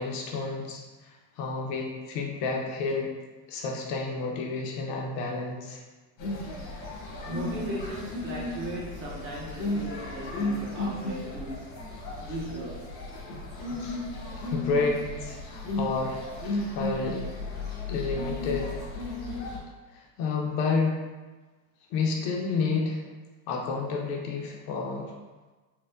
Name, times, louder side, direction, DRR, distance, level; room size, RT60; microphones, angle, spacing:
voice 1, 0.0-3.1 3.5-5.8 13.8-14.0 14.4-17.2 17.9-18.8 19.9-21.0 21.9-23.0 23.5-25.1, left 4 dB, 50° left, 0 dB, 0.5 m, -30 dB
sound 1, 6.2-19.6, left 2 dB, 85° left, 1.1 m, -34 dB
voice 2, 7.3-11.7 12.2-13.0, right 1 dB, 25° right, -5 dB, 0.6 m, -37 dB
4.2 x 2.0 x 2.5 m, 1.3 s
cardioid pair, 155°, 43 cm